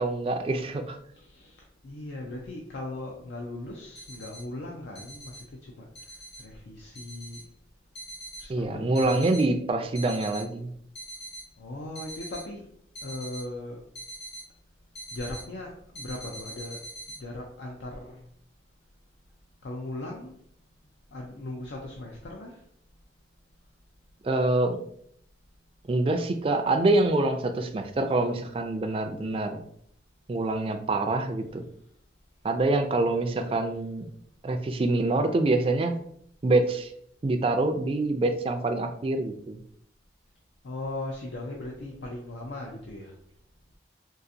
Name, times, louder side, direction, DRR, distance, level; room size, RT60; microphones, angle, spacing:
voice 1, 0.0-1.0 8.5-10.7 24.2-24.8 25.9-29.6 30.3-31.6 32.4-34.0 34.4-35.9 36.4-36.9 37.2-39.6, right 2 dB, 30° right, 6 dB, 0.3 m, -25 dB
voice 2, 1.1-1.6 1.8-5.4 5.8-5.9 6.4-7.4 8.4-9.3 11.6-12.6 13.0-13.8 15.1-16.8 17.2-18.2 19.6-20.3 21.1-22.6 40.6-43.1, left 2 dB, 80° left, 0 dB, 0.5 m, -38 dB
sound 1, 4.0-4.4 5.0-5.4 6.0-6.4 7.0-7.4 8.0-8.4 9.0-9.4 10.0-10.4 11.0-11.4 12.0-12.4 13.0-13.4 14.0-14.4 15.0-15.4 16.0-17.2, right 1 dB, 65° left, 1.5 m, -42 dB
3.9 x 2.4 x 2.6 m, 0.68 s
head